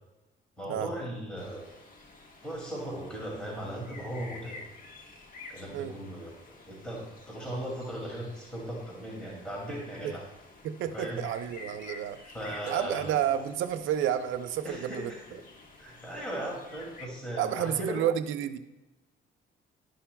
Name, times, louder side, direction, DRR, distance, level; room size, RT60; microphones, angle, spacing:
voice 1, 0.6-1.7 2.4-4.6 5.5-10.2 10.9-11.2 12.3-13.2 14.6-15.2 15.8-18.0, right 1 dB, 5° left, -4 dB, 2.4 m, -37 dB
sound 1, 1.4-17.1, left 3 dB, 45° left, 1.3 m, -51 dB
voice 2, 10.6-12.2 12.6-15.1 17.4-18.6, right 10 dB, 80° right, 11 dB, 0.6 m, -30 dB
11.5 x 5.7 x 2.3 m, 1.0 s
cardioid pair, 90°, 20 cm